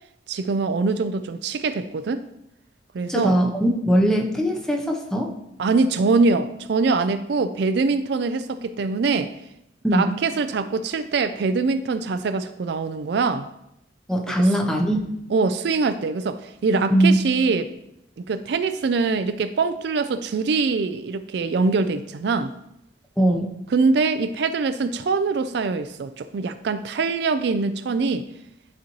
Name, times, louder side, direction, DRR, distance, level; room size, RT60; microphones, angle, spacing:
voice 1, 0.3-2.2 2.9-3.4 5.6-9.3 9.9-13.5 14.3-14.5 15.3-17.7 18.2-22.5 23.7-28.2, right 4 dB, 60° right, 10 dB, 0.4 m, -23 dB
voice 2, 3.1-5.3 9.8-10.1 14.1-15.1 16.9-17.2 23.2-23.5, right 1 dB, 5° left, 2 dB, 0.8 m, -20 dB
11.0 x 4.2 x 3.0 m, 0.82 s
head